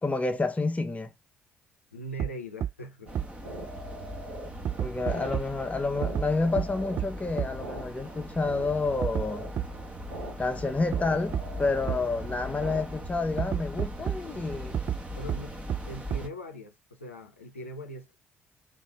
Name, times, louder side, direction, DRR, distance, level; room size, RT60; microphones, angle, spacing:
voice 1, 0.0-1.1 4.8-9.5 10.4-14.8, left 3 dB, 20° left, 1.0 m, -29 dB
voice 2, 1.9-3.1 15.2-15.6 15.9-18.1, equal, 90° left, 0.6 m, -40 dB
sound 1, 2.2-2.3 2.6-2.7 3.1-3.2 4.6-5.4 6.0-6.2 6.6-6.7 7.0-7.1 7.4-7.5 9.0-9.2 9.6-9.7 10.9-11.0 11.3-11.4 11.9-12.0 13.4-14.2 14.7-15.0 15.3-15.4 15.7-15.8 16.1-16.2, right 9 dB, 45° right, 0.4 m, -28 dB
sound 2, 3.1-16.3, equal, 20° right, 1.6 m, -41 dB
sound 3, 3.1-12.8, equal, 85° right, 1.6 m, -41 dB
3.9 x 3.3 x 3.4 m
figure-of-eight pair, 50°, 7 cm